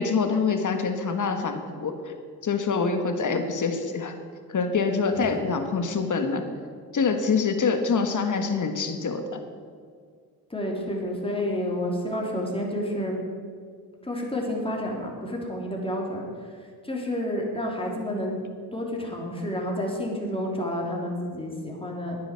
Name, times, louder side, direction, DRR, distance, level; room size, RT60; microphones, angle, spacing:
voice 1, 0.0-2.1 2.4-4.1 4.5-6.5 6.9-9.4, left 5 dB, 50° left, 7 dB, 1.6 m, -25 dB
voice 2, 10.5-13.2 14.0-16.3 16.8-18.4 18.7-22.2, left 1 dB, 15° left, -1 dB, 3.3 m, -30 dB
9.8 x 9.5 x 7.5 m, 2.1 s
cardioid pair, 70°, 40 cm